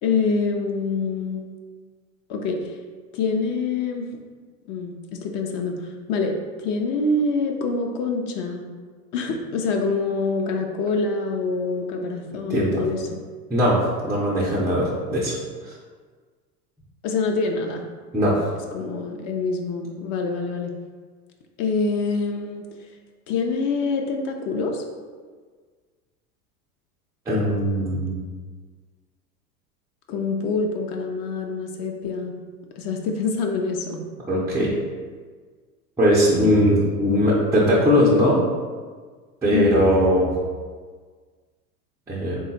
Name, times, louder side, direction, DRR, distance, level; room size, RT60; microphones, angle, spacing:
voice 1, 0.0-1.4 2.3-2.8 3.1-4.1 4.7-8.6 9.1-13.2 17.0-17.8 18.7-20.7 21.6-22.6 23.3-24.8 30.1-32.3 32.8-34.0 39.5-39.8, left 4 dB, 45° left, 3 dB, 0.6 m, -25 dB
voice 2, 12.5-12.8 13.5-15.3 15.6-15.7 18.1-18.3 27.3-28.2 34.3-34.7 36.0-38.4 39.4-40.3 42.1-42.4, equal, 10° right, -8 dB, 0.3 m, -20 dB
3.6 x 2.3 x 3.9 m, 1.5 s
hypercardioid pair, 90°, 48 cm